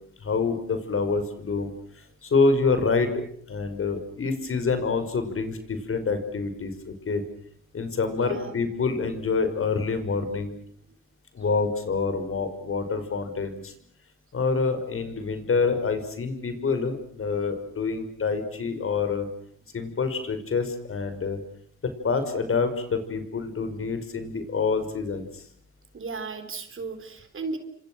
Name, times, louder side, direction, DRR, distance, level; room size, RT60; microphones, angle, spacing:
voice 1, 0.2-1.7 2.2-3.2 3.5-7.2 7.7-10.5 11.3-13.7 14.3-19.3 19.7-21.4 21.8-25.4, left 4 dB, 45° left, 9 dB, 5.7 m, -27 dB
voice 2, 8.1-8.5 25.9-27.6, right 4 dB, 45° right, 8 dB, 4.1 m, -35 dB
29.5 x 26.0 x 6.4 m, 0.62 s
cardioid pair, 90°, 30 cm